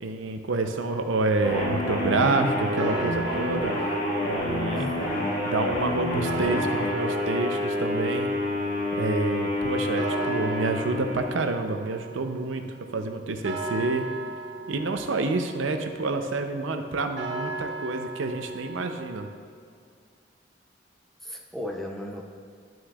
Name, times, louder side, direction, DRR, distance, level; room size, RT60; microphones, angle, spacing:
voice 1, 0.0-3.7 4.2-4.9 5.5-8.3 9.0-12.7 12.9-14.1 14.7-19.3, right 3 dB, 85° right, 6 dB, 0.6 m, -28 dB
sound 1, 0.6-19.3, right 2 dB, 70° right, 1.0 m, -38 dB
sound 2, 1.4-11.7, left 1 dB, 45° left, 1.8 m, -28 dB
voice 2, 4.7-5.3 21.2-22.2, equal, ahead, 0 dB, 0.6 m, -36 dB
11.5 x 6.2 x 2.4 m, 2.3 s
head